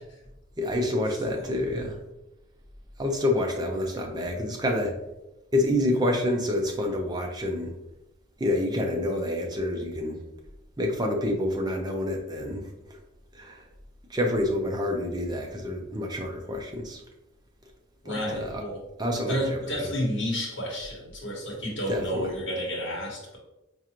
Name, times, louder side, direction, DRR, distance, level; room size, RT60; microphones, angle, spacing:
voice 1, 0.6-2.0 3.0-4.9 5.5-7.7 8.4-10.2 10.8-12.7 13.3-13.6 14.1-17.0 18.1-18.6 19.0-19.6 21.9-22.3, left 1 dB, 20° right, 2 dB, 0.5 m, -28 dB
voice 2, 18.0-18.8 19.2-23.4, equal, 60° left, -3 dB, 1.2 m, -31 dB
4.7 x 2.5 x 2.9 m, 0.94 s
head